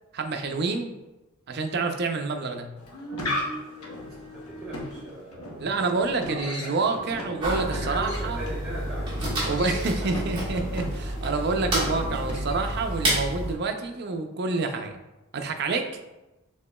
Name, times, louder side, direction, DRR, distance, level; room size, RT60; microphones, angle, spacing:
voice 1, 0.1-0.9 1.5-2.7 5.6-8.4 9.5-14.9 15.3-15.9, right 3 dB, 50° right, 5 dB, 0.4 m, -28 dB
sound 1, 2.8-12.8, left 1 dB, 85° left, 0.9 m, -37 dB
voice 2, 4.0-5.6 6.2-6.8 7.6-10.0, right 1 dB, 5° right, -13 dB, 1.1 m, -39 dB
sound 2, 7.4-13.5, right 1 dB, 20° right, 1.4 m, -29 dB
6.5 x 2.9 x 2.2 m, 1.0 s
head